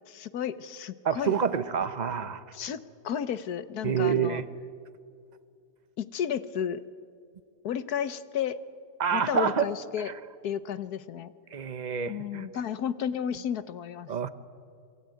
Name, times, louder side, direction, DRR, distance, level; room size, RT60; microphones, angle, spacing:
voice 1, 0.1-1.3 2.5-2.8 3.0-4.4 6.0-6.8 7.6-8.6 9.1-10.1 10.4-11.3 12.1-14.1, left 8 dB, 60° left, 14 dB, 1.3 m, -32 dB
voice 2, 1.0-2.4 3.8-4.5 9.0-9.7 10.0-10.1 11.5-12.5 14.1-14.3, right 7 dB, 35° right, 12 dB, 0.8 m, -27 dB
28.5 x 22.0 x 9.3 m, 2.3 s
omnidirectional pair, 2.0 m